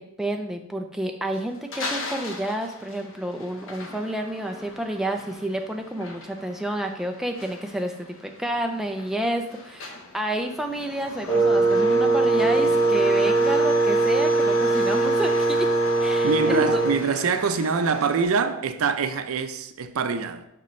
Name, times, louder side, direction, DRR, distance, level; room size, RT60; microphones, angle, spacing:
voice 1, 0.0-15.7 16.0-16.9, right 1 dB, ahead, 0.4 m, -30 dB
sound 1, 1.3-18.2, left 2 dB, 65° left, 0.9 m, -38 dB
Wind instrument woodwind instrument, 11.3-17.1, right 3 dB, 15° left, 0.8 m, -21 dB
voice 2, 16.2-20.5, right 5 dB, 85° right, 0.5 m, -24 dB
6.8 x 5.1 x 3.1 m
head